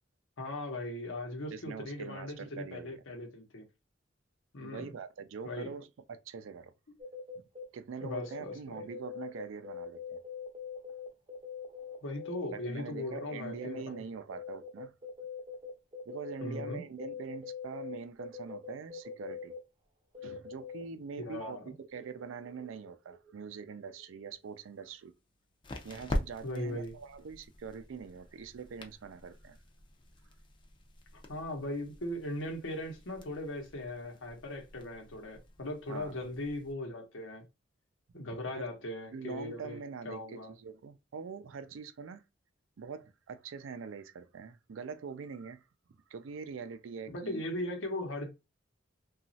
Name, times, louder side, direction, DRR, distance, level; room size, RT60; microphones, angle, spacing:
voice 1, 0.4-3.6 4.5-4.9 5.4-5.7 8.0-8.9 12.0-14.1 16.4-16.8 21.2-21.7 26.4-26.9 31.1-37.4 38.1-40.5 47.1-48.3, left 1 dB, 80° left, 0.9 m, -39 dB
voice 2, 1.5-3.0 4.6-6.7 7.7-10.2 12.4-14.9 16.1-19.5 20.2-21.6 21.9-25.1 25.8-29.6 35.9-36.2 38.5-38.6 39.1-42.2 42.8-45.6 46.1-47.4, right 5 dB, 90° right, 0.4 m, -44 dB
sound 1, 7.0-7.6 8.0-12.7 13.0-14.0 14.3-19.6 20.1-20.8 21.2-23.5 23.9-24.3 24.5-24.6, left 6 dB, 25° right, 0.5 m, -43 dB
sound 2, 24.3-36.7, left 1 dB, 25° left, 0.4 m, -44 dB
2.9 x 2.3 x 2.6 m
head